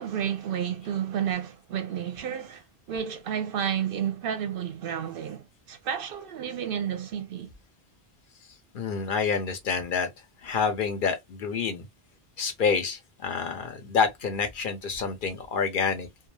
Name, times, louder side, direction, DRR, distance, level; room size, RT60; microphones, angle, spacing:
voice 1, 0.0-7.5, right 8 dB, 65° right, 0.7 m, -31 dB
voice 2, 8.7-10.1 10.4-11.8 12.4-16.1, left 5 dB, 60° left, 0.7 m, -28 dB
2.3 x 2.2 x 3.0 m
omnidirectional pair, 1.1 m